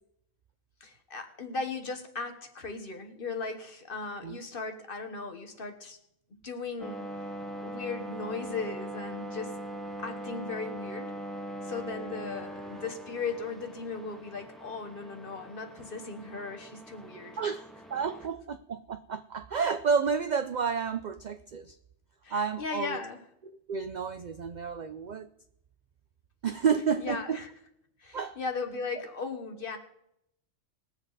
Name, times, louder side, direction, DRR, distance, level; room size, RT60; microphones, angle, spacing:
voice 1, 0.8-6.0 6.4-7.0 7.6-9.5 10.0-11.1 11.6-17.7 18.2-18.3 22.2-23.2 26.6-27.6 28.0-29.8, left 4 dB, 45° left, 1.3 m, -37 dB
sound 1, 6.8-18.3, right 1 dB, ahead, 1.0 m, -41 dB
voice 2, 17.4-21.7 22.3-23.0 23.4-25.3 26.4-27.4 28.1-28.4, right 6 dB, 65° right, 0.4 m, -31 dB
20.5 x 7.6 x 4.0 m
omnidirectional pair, 1.3 m